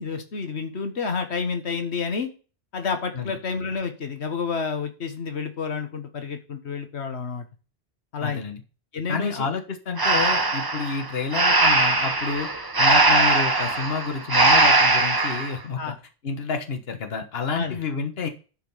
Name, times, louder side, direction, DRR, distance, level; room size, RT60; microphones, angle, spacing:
voice 1, 0.0-2.3 2.7-7.4 8.1-8.4 8.9-9.5 15.8-15.9 17.5-17.8, left 5 dB, 90° left, 6 dB, 1.6 m, -29 dB
voice 2, 8.2-8.6 9.1-12.5 12.8-15.9 16.2-18.3, left 5 dB, 65° left, 6 dB, 1.4 m, -29 dB
Breathing, 10.0-15.5, right 2 dB, 20° right, 1.0 m, -20 dB
11.0 x 5.1 x 5.5 m, 0.35 s
omnidirectional pair, 1.1 m